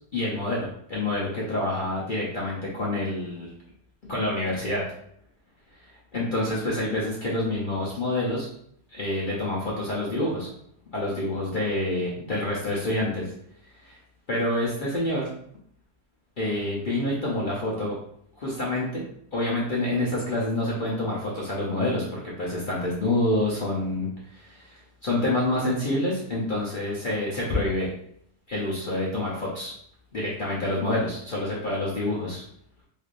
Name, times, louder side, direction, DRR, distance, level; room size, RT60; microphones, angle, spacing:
voice 1, 0.1-3.5 4.0-4.8 5.8-8.5 8.9-10.5 10.9-13.3 13.8-14.0 14.3-15.3 16.4-18.0 18.4-19.0 19.3-27.9 28.5-29.7 30.1-32.4, left 1 dB, 45° left, -6 dB, 0.7 m, -27 dB
3.4 x 3.1 x 2.5 m, 0.69 s
omnidirectional pair, 1.6 m